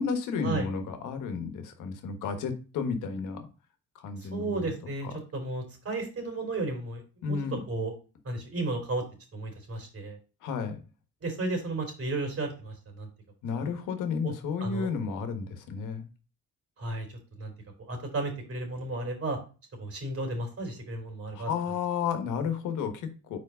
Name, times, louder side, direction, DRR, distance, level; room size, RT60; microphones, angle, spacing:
voice 1, 0.0-3.5 3.9-4.7 7.2-7.6 10.4-10.8 13.4-16.0 21.3-23.4, left 6 dB, 85° left, 1.3 m, -32 dB
voice 2, 4.2-7.4 7.7-7.9 8.2-9.0 9.3-10.2 11.2-13.1 13.6-13.7 14.2-14.3 14.6-14.9 16.8-17.5 17.9-19.4 19.8-21.5, right 2 dB, 50° right, 3.2 m, -33 dB
4.8 x 4.5 x 4.9 m
cardioid pair, 90°, 30 cm